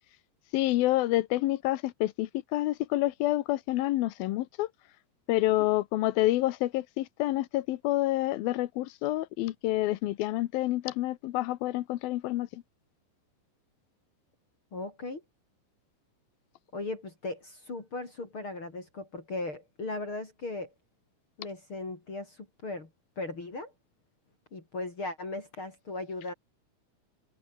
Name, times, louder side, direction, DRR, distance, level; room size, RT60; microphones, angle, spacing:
voice 1, 0.5-4.7 5.3-12.6, left 16 dB, 90° left, 2.8 m, -28 dB
voice 2, 14.7-15.2 16.7-20.7 21.4-22.9 23.2-23.7 24.5-26.3, left 2 dB, 35° left, 4.6 m, -37 dB
omnidirectional pair, 4.2 m